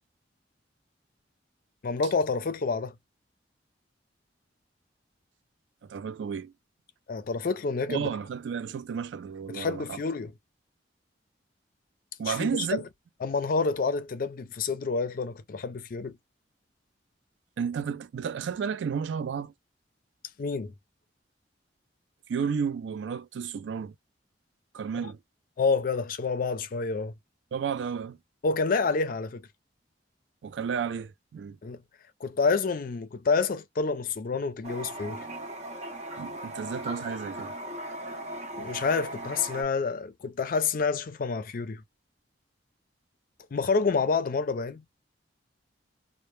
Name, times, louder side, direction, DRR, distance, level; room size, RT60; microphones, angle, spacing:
voice 1, 1.8-2.9 7.1-8.1 9.5-10.3 12.3-12.8 13.2-16.2 20.4-20.7 25.0-25.1 25.6-27.1 28.4-29.4 31.6-31.8 32.2-35.3 38.5-41.8 43.5-44.8, left 4 dB, 50° left, 0.4 m, -28 dB
voice 2, 5.9-6.5 7.9-10.0 12.2-12.8 17.6-19.5 22.3-23.9 24.7-25.2 27.5-28.2 30.4-31.6 36.2-37.5, right 6 dB, 80° right, 0.3 m, -32 dB
Toilet flush, 34.6-39.6, right 1 dB, 40° right, 0.7 m, -38 dB
2.0 x 2.0 x 3.0 m
head